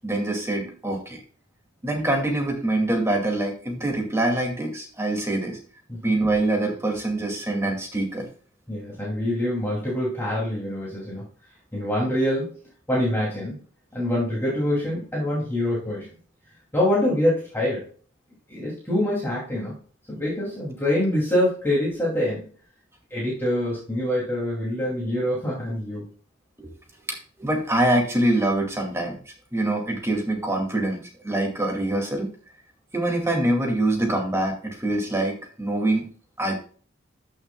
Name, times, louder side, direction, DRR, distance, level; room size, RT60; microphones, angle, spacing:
voice 1, 0.0-1.2 1.8-5.6 6.0-8.3 26.6-26.7 27.1-32.3 32.9-36.1 36.4-36.6, right 1 dB, 15° right, 1 dB, 2.2 m, -25 dB
voice 2, 8.7-11.2 11.7-12.5 12.9-13.6 13.9-16.1 16.7-17.8 18.5-19.8 20.1-22.5 23.1-26.1, left 1 dB, 10° left, -6 dB, 2.6 m, -25 dB
13.0 x 6.5 x 2.3 m, 0.43 s
head